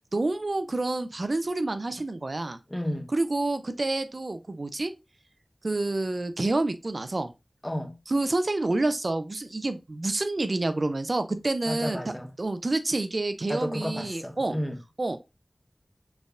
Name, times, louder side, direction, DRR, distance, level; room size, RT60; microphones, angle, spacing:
voice 1, 0.1-2.6 3.1-4.9 5.6-7.3 8.1-12.0 12.4-14.6 15.0-15.2, right 2 dB, 65° right, 0.4 m, -28 dB
voice 2, 2.7-3.1 7.6-7.9 11.7-12.3 13.5-14.8, equal, 20° left, 0.9 m, -32 dB
4.2 x 3.4 x 2.3 m
wide cardioid pair, 50°, 0 cm